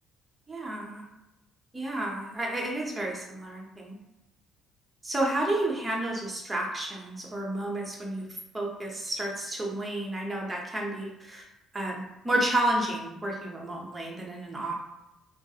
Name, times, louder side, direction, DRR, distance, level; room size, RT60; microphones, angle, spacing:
voice 1, 0.5-1.0 1.7-4.0 5.0-8.2 8.5-11.4 11.7-14.8, right 1 dB, 10° right, -2 dB, 0.7 m, -31 dB
3.8 x 2.3 x 2.7 m, 0.94 s
cardioid pair, 145°, 0 cm